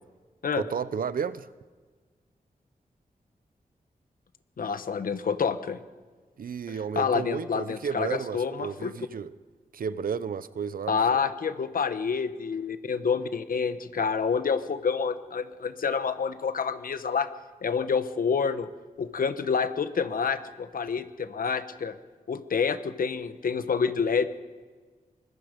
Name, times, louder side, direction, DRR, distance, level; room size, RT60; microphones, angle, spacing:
voice 1, 0.6-1.5 6.4-9.3 9.7-11.2, right 6 dB, 75° right, 0.8 m, -32 dB
voice 2, 4.6-5.8 6.9-8.9 10.9-17.3 17.6-18.7 19.0-21.9 22.3-24.3, left 6 dB, 75° left, 1.2 m, -28 dB
25.0 x 21.5 x 5.2 m
wide cardioid pair, 130°, 15 cm